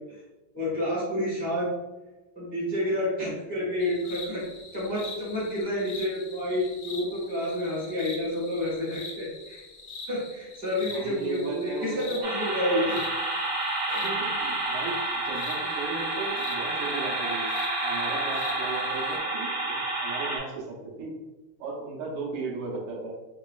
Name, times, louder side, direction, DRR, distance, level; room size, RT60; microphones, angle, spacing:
voice 1, 0.5-1.7 2.3-4.4 4.7-9.6 10.1-13.0 13.9-14.0, left 1 dB, 5° left, -8 dB, 0.8 m, -29 dB
sound 1, 3.8-19.2, left 3 dB, 70° left, 1.1 m, -44 dB
voice 2, 10.9-12.2 12.9-13.0 13.9-17.5 17.8-21.2 21.6-23.1, right 4 dB, 80° right, -2 dB, 1.7 m, -36 dB
sound 2, 12.2-20.4, right 2 dB, 30° right, 0.6 m, -29 dB
3.8 x 3.0 x 2.3 m, 1.1 s
omnidirectional pair, 2.4 m